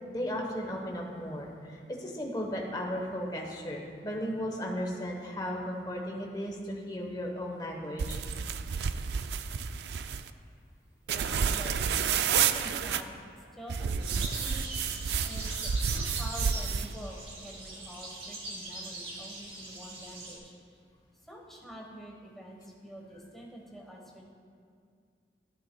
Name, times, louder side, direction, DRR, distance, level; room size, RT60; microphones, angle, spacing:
voice 1, 0.1-8.2, equal, 20° left, 0 dB, 1.0 m, -35 dB
sound 1, 8.0-10.3 11.1-13.0 13.7-16.9, right 7 dB, 70° right, 0.3 m, -30 dB
voice 2, 11.1-11.8 12.2-13.1 13.5-14.7 15.3-15.7 16.0-20.5 21.2-24.2, equal, ahead, -3 dB, 1.1 m, -47 dB
sound 2, 14.0-20.4, right 2 dB, 35° right, 1.3 m, -41 dB
14.5 x 8.6 x 2.3 m, 2.3 s
head